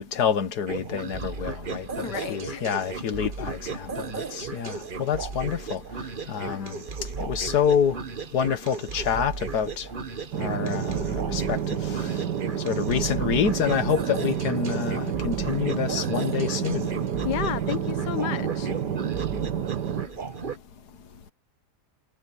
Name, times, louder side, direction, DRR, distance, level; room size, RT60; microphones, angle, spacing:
voice 1, 0.0-5.8 6.3-6.8 7.2-8.0 8.3-9.9 10.4-11.6 11.9-12.0 12.6-16.9, left 7 dB, 70° left, 1.9 m, -27 dB
sound 1, 0.7-20.6, right 5 dB, 35° right, 1.1 m, -35 dB
voice 2, 2.0-2.7 6.4-6.8 17.2-18.7, left 11 dB, 85° left, 1.5 m, -32 dB
sound 2, 10.3-20.1, right 8 dB, 80° right, 1.9 m, -29 dB
omnidirectional pair, 1.7 m